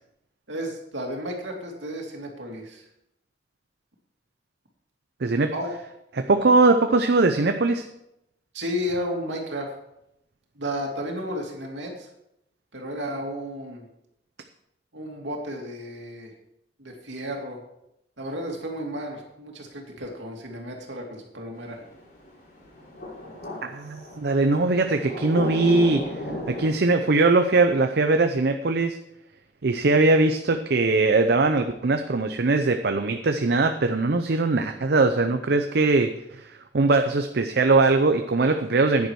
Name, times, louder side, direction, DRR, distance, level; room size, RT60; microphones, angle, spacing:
voice 1, 0.5-2.9 5.5-5.7 8.5-9.7 10.6-12.1 12.7-13.9 14.9-16.3 16.8-17.6 18.2-21.8, equal, 85° right, 1 dB, 2.6 m, -33 dB
voice 2, 5.2-5.5 6.1-7.9 23.6-26.0 26.5-29.0 29.6-39.1, right 3 dB, 60° right, 7 dB, 0.6 m, -21 dB
sound 1, 21.6-26.7, left 1 dB, 55° left, 4.0 m, -34 dB
10.5 x 9.7 x 4.7 m, 0.82 s
head